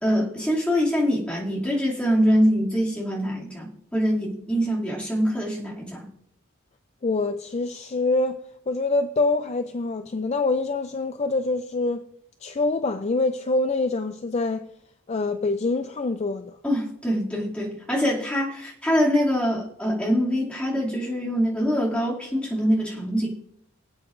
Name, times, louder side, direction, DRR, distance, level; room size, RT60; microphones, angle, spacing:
voice 1, 0.0-6.1 16.6-23.3, equal, 5° left, 2.4 m, -24 dB
voice 2, 7.0-8.4 8.7-12.0 12.4-14.7 15.1-16.6, left 3 dB, 30° left, 0.4 m, -25 dB
24.5 x 8.1 x 2.5 m
head